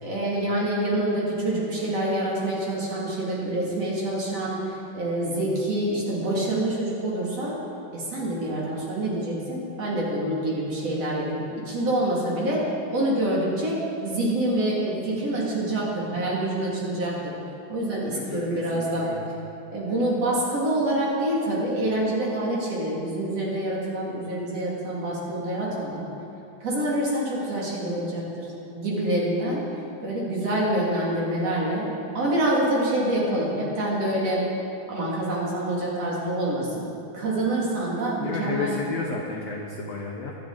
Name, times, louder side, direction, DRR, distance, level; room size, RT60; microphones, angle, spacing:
voice 1, 0.0-7.6 7.9-17.3 17.7-19.1 19.7-26.1 26.6-28.5 28.7-29.7 30.0-31.9 32.1-34.5 34.9-36.8 37.1-38.7, right 1 dB, 45° right, -5 dB, 3.3 m, -26 dB
voice 2, 18.1-19.2 38.2-40.4, left 3 dB, 75° left, 0 dB, 1.5 m, -32 dB
23.0 x 10.0 x 4.0 m, 2.7 s
omnidirectional pair, 4.3 m